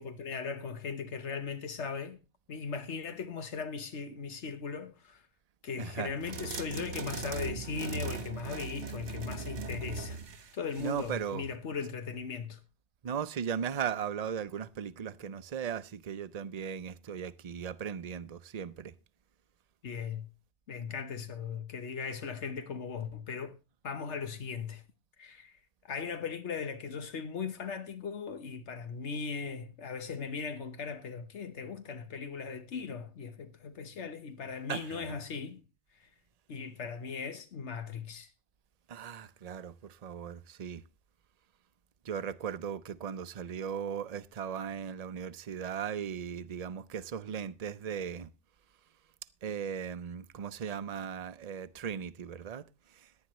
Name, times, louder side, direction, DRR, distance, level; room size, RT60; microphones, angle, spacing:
voice 1, 0.0-2.2 2.5-5.3 5.6-10.2 10.5-12.6 19.8-20.3 20.7-23.6 23.8-24.8 25.2-25.6 25.9-35.6 36.0-36.1 36.5-38.3, left 5 dB, 85° left, 1.4 m, -38 dB
voice 2, 5.8-6.1 10.8-11.4 13.0-18.9 34.7-35.0 38.9-39.7 40.0-40.8 42.1-48.3 49.4-52.6, right 7 dB, 40° right, 0.7 m, -37 dB
sound 1, 6.2-11.3, right 4 dB, 85° right, 1.4 m, -39 dB
18.0 x 10.5 x 3.0 m
omnidirectional pair, 1.2 m